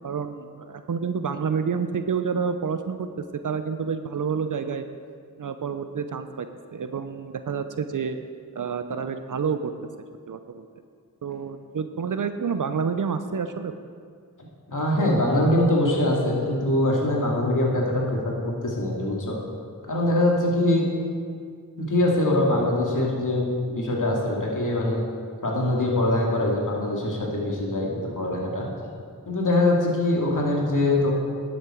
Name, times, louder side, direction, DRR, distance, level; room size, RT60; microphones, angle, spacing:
voice 1, 0.0-4.9 5.4-8.2 8.5-9.7 10.3-10.7 11.2-13.8, right 6 dB, 60° right, 9 dB, 0.6 m, -29 dB
voice 2, 14.7-19.4 19.9-20.9 21.8-25.0 25.4-28.7 29.3-31.1, left 1 dB, 55° left, -2 dB, 2.4 m, -23 dB
11.0 x 8.4 x 4.5 m, 2.1 s
cardioid pair, 45°, 36 cm